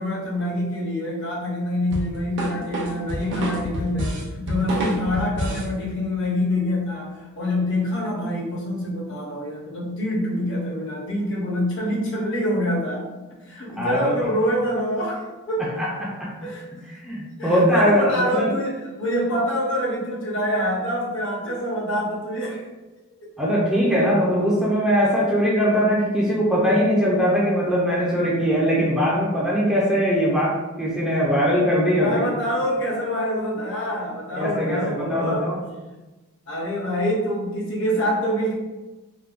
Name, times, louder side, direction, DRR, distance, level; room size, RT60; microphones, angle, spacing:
voice 1, 0.0-13.0 13.5-15.6 16.4-16.7 17.4-22.6 31.1-31.5 31.9-35.4 36.5-38.5, equal, 55° left, -4 dB, 0.8 m, -26 dB
sound 1, 1.9-5.7, right 1 dB, 55° right, 0.6 m, -28 dB
voice 2, 13.8-14.1 15.8-16.3 16.9-18.5 23.4-32.2 34.4-35.6, equal, 5° right, -6 dB, 0.4 m, -21 dB
3.3 x 2.1 x 2.4 m, 1.1 s
head